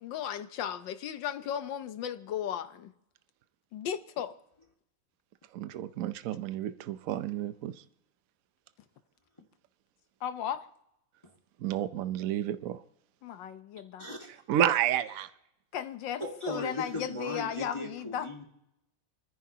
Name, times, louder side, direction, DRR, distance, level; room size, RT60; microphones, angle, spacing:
voice 1, 0.0-2.9 3.7-4.3 10.2-10.7 13.2-14.1 15.7-18.3, left 9 dB, 85° left, 1.5 m, -35 dB
voice 2, 5.5-7.7 11.6-12.8 14.5-15.3, right 11 dB, 60° right, 1.0 m, -30 dB
voice 3, 14.0-14.4 16.2-18.4, left 1 dB, 15° left, 1.8 m, -37 dB
29.0 x 10.0 x 2.8 m
omnidirectional pair, 2.0 m